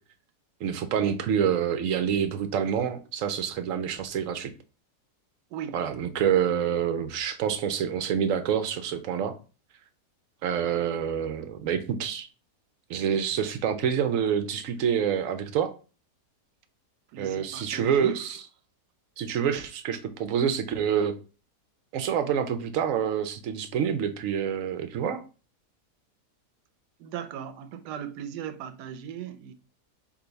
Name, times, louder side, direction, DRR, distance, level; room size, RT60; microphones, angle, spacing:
voice 1, 0.6-4.5 5.7-9.3 10.4-12.3 12.9-15.7 17.2-18.4 19.2-21.2 21.9-25.2, right 8 dB, 70° right, 0.8 m, -27 dB
voice 2, 17.1-18.2 27.0-29.5, right 8 dB, 85° right, 1.2 m, -37 dB
4.9 x 2.5 x 3.9 m
omnidirectional pair, 1.7 m